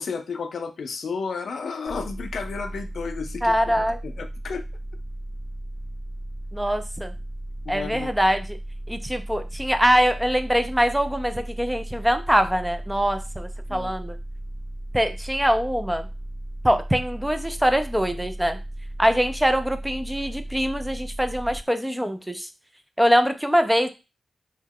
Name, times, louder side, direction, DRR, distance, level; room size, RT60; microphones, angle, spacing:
voice 1, 0.0-3.7 4.0-4.6 7.7-8.1 13.7-13.9, left 5 dB, 75° left, 8 dB, 0.4 m, -32 dB
sound 1, 1.9-21.6, right 1 dB, 35° right, 0.8 m, -35 dB
voice 2, 3.4-4.0 6.5-7.1 7.7-8.6 8.9-14.2 14.9-16.1 16.6-18.6 19.0-22.5 23.0-23.9, equal, 5° right, 8 dB, 0.4 m, -23 dB
2.8 x 2.1 x 3.6 m, 0.28 s
wide cardioid pair, 90°, 0 cm